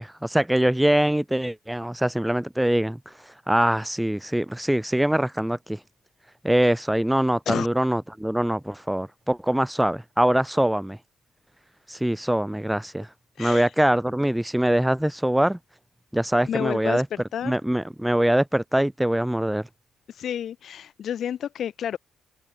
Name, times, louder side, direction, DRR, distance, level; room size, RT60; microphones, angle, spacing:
voice 1, 0.0-5.8 6.4-11.0 11.9-13.1 13.4-15.6 16.1-17.1 17.4-19.6, right 1 dB, 5° right, 0.4 m, -23 dB
voice 2, 16.4-17.5 20.1-22.0, left 9 dB, 65° left, 2.7 m, -30 dB
cardioid pair, 90°, 0 cm